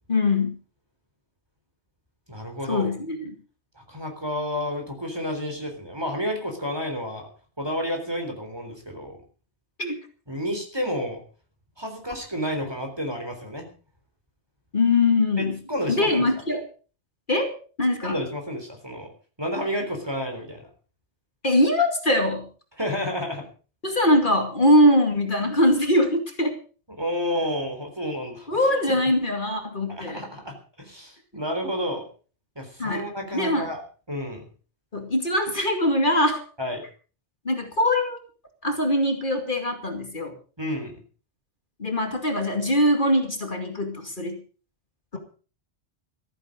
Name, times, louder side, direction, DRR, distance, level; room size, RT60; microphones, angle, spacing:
voice 1, 0.1-0.6 2.7-3.3 9.8-10.0 14.7-15.6 15.9-16.6 17.3-18.2 21.4-22.5 23.8-26.5 28.5-30.3 32.8-33.0 33.3-33.7 34.9-36.4 37.4-38.2 38.6-40.3 41.8-44.4, left 1 dB, 45° left, 4 dB, 2.5 m, -22 dB
voice 2, 2.3-2.9 3.9-7.3 7.6-9.2 10.3-11.2 11.8-13.7 15.4-16.4 18.0-19.1 19.4-20.7 22.8-23.4 27.0-28.5 28.9-29.0 29.9-32.0 32.6-33.8 34.1-34.4 36.6-36.8 40.6-41.0, equal, 20° right, 4 dB, 4.0 m, -30 dB
14.5 x 14.0 x 5.2 m, 0.38 s
omnidirectional pair, 1.2 m